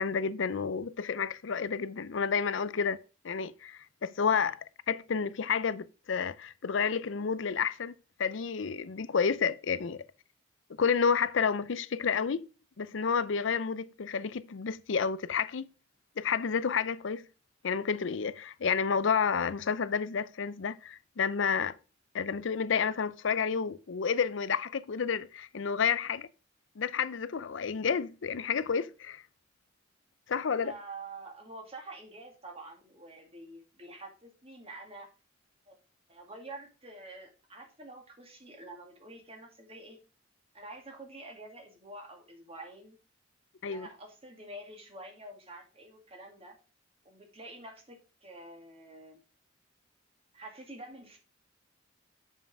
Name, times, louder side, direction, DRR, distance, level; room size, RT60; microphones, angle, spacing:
voice 1, 0.0-3.0 3.2-10.0 10.8-12.4 12.8-15.7 16.2-17.3 17.6-21.8 22.1-26.3 26.8-29.2 30.3-30.7 43.6-43.9, left 6 dB, 70° left, 0.5 m, -30 dB
voice 2, 30.6-35.1 35.7-35.8 36.1-40.0 40.5-43.0 43.6-46.6 47.0-49.2 50.3-51.2, right 2 dB, 30° right, 2.2 m, -47 dB
7.3 x 5.7 x 4.8 m
head